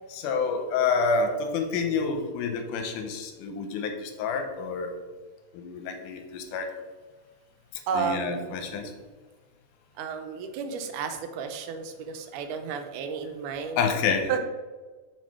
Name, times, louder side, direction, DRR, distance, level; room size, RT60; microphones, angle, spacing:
voice 1, 0.1-4.9 5.5-6.7 7.9-8.9 13.8-14.3, left 5 dB, 85° left, 5 dB, 2.3 m, -28 dB
voice 2, 7.9-8.7 10.0-13.8 14.3-14.4, right 6 dB, 85° right, 7 dB, 2.1 m, -32 dB
6.4 x 4.3 x 4.7 m, 1.3 s
omnidirectional pair, 3.6 m